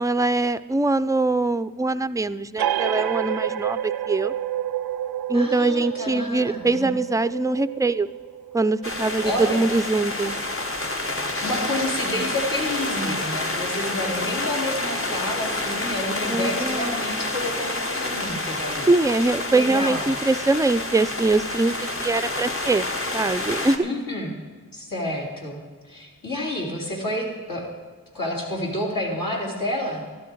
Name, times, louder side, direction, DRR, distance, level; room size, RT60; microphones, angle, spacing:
voice 1, 0.0-4.3 5.3-8.1 8.5-10.4 16.3-16.9 18.9-21.7 22.0-22.9 23.1-23.8, right 2 dB, 10° right, 13 dB, 0.4 m, -23 dB
sound 1, 2.6-9.8, right 11 dB, 90° right, 0.5 m, -29 dB
voice 2, 5.3-6.9 9.2-9.6 11.4-18.9 19.5-20.2 23.8-24.3 24.7-27.6 28.1-30.0, left 1 dB, 65° left, -3 dB, 3.7 m, -29 dB
sound 2, 8.8-23.8, left 2 dB, 35° left, 1.3 m, -28 dB
13.0 x 12.0 x 4.6 m, 1.5 s
cardioid pair, 55°, 36 cm